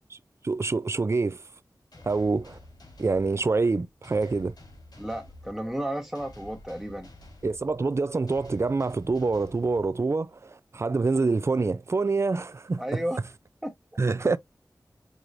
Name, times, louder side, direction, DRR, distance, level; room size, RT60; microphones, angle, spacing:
voice 1, 0.4-1.4 2.0-2.6 3.0-4.5 7.4-13.0 14.0-14.4, right 3 dB, 40° right, 0.5 m, -26 dB
sound 1, 1.9-10.4, left 1 dB, 80° left, 2.5 m, -50 dB
voice 2, 5.0-7.1 12.8-13.2 13.6-13.7, right 1 dB, 5° right, 0.9 m, -32 dB
4.8 x 3.8 x 2.6 m
wide cardioid pair, 75°, 7 cm